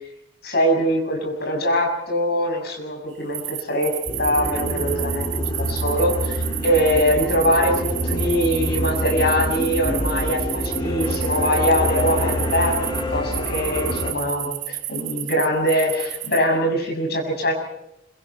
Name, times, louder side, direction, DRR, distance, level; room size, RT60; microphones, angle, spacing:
voice 1, 0.4-3.9 4.2-17.5, equal, 60° left, 2 dB, 6.8 m, -22 dB
sound 1, 3.3-13.0 13.3-16.4, right 14 dB, 80° right, 1.7 m, -31 dB
sound 2, 4.1-14.1, equal, 25° left, 3.9 m, -26 dB
26.0 x 24.0 x 4.6 m, 0.85 s
head